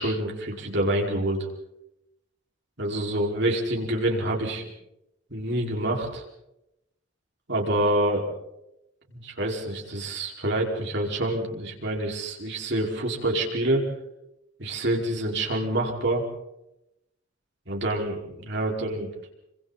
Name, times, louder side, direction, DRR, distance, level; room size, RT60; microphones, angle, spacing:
voice 1, 0.0-1.4 2.8-4.6 5.3-6.2 7.5-8.2 9.1-13.8 14.6-16.2 17.7-19.1, right 1 dB, 55° right, 0 dB, 5.3 m, -27 dB
28.5 x 26.0 x 4.3 m, 0.85 s
head